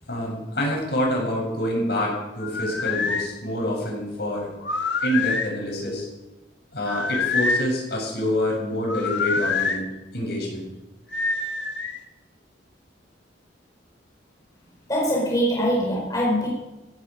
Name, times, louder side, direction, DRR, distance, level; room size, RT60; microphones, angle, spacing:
voice 1, 0.0-4.5 5.0-6.1 6.7-10.7, left 1 dB, 60° left, -1 dB, 7.6 m, -27 dB
sound 1, 2.4-3.3 4.6-5.5 6.8-7.7 8.9-9.8 11.1-12.0, left 4 dB, 90° left, 1.6 m, -26 dB
voice 2, 14.9-16.5, equal, 20° left, -4 dB, 4.9 m, -23 dB
16.5 x 16.0 x 5.2 m, 1.0 s
head